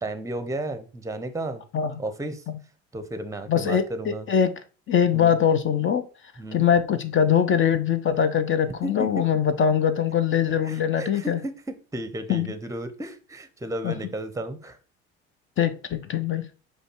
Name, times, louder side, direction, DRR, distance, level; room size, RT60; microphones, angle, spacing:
voice 1, 0.0-1.6 2.0-2.4 2.9-4.3 5.1-5.3 6.4-6.6 8.8-9.2 10.6-11.5 11.9-14.8, right 1 dB, 10° right, 10 dB, 0.7 m, -33 dB
voice 2, 3.5-4.5 4.9-6.0 6.5-11.4 12.3-12.5 13.8-13.9 15.6-16.5, left 8 dB, 35° left, 11 dB, 0.5 m, -22 dB
5.1 x 2.3 x 4.4 m, 0.35 s
hypercardioid pair, 65°, 34 cm